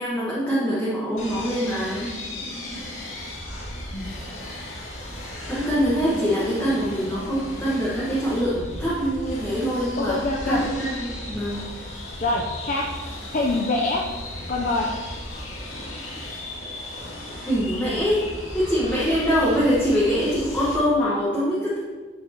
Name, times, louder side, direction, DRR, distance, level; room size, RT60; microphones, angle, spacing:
voice 1, 0.0-2.1 5.5-11.6 17.4-18.3 18.5-21.8, equal, 10° left, -9 dB, 1.3 m, -24 dB
sound 1, 1.2-20.8, left 1 dB, 85° left, 2.0 m, -36 dB
voice 2, 6.4-7.4 10.0-10.6 12.2-12.9 13.3-14.0 14.5-14.9, left 2 dB, 40° left, -1 dB, 0.5 m, -26 dB
9.8 x 6.3 x 2.9 m, 1.4 s
head